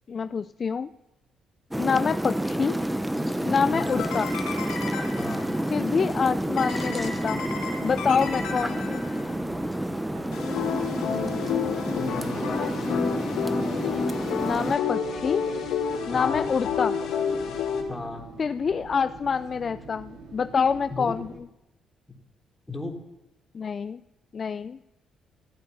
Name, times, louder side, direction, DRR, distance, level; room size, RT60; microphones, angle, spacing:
voice 1, 0.1-0.9 1.8-2.8 3.4-4.4 5.7-7.4 7.8-9.0 14.4-15.5 16.1-17.0 18.4-21.3 23.5-24.0 24.3-24.8, left 6 dB, 45° left, 12 dB, 0.4 m, -26 dB
sound 1, 1.7-14.8, right 1 dB, 5° right, 0.7 m, -29 dB
voice 2, 3.1-4.0 5.2-5.8 12.0-13.6 16.1-16.4 17.5-17.6 17.9-18.3 20.9-21.2 22.1-22.2 22.7-23.0, left 2 dB, 15° left, 0 dB, 3.3 m, -38 dB
sound 2, 3.8-5.7 6.6-9.4 10.3-17.8, left 6 dB, 90° left, 3.0 m, -30 dB
Fixed-wing aircraft airplane, 6.0-21.4, right 4 dB, 80° right, 3.4 m, -44 dB
16.0 x 8.5 x 9.1 m, 0.94 s
cardioid pair, 90°, 0 cm